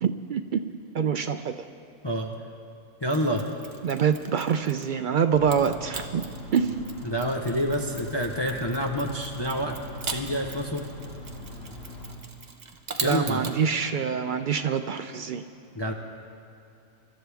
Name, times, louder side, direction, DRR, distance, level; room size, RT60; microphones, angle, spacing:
voice 1, 0.0-1.7 3.8-6.2 6.5-6.8 13.0-15.4, right 7 dB, 70° right, 8 dB, 0.4 m, -26 dB
voice 2, 3.0-3.4 7.0-9.8 10.0-10.8 13.0-13.4 15.7-15.9, equal, 25° left, 2 dB, 0.8 m, -27 dB
Mechanisms, 3.1-5.0 5.5-13.6, right 4 dB, 35° right, 0.9 m, -40 dB
sound 1, 5.3-12.1, left 1 dB, 85° left, 3.2 m, -41 dB
24.5 x 13.0 x 3.5 m, 2.7 s
omnidirectional pair, 1.4 m